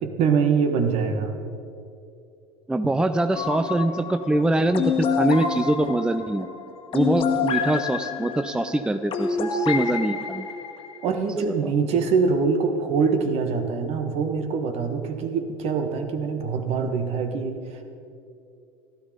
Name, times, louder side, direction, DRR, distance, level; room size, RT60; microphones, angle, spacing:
voice 1, 0.0-1.4 2.8-2.9 11.0-17.8, right 5 dB, 55° right, 6 dB, 1.6 m, -24 dB
voice 2, 2.7-6.5 6.9-10.5 11.4-11.7, right 1 dB, 5° right, 10 dB, 0.5 m, -24 dB
sound 1, 3.3-11.1, left 6 dB, 45° left, 1.4 m, -28 dB
13.5 x 12.0 x 5.2 m, 2.6 s
supercardioid pair, 95°, 12 cm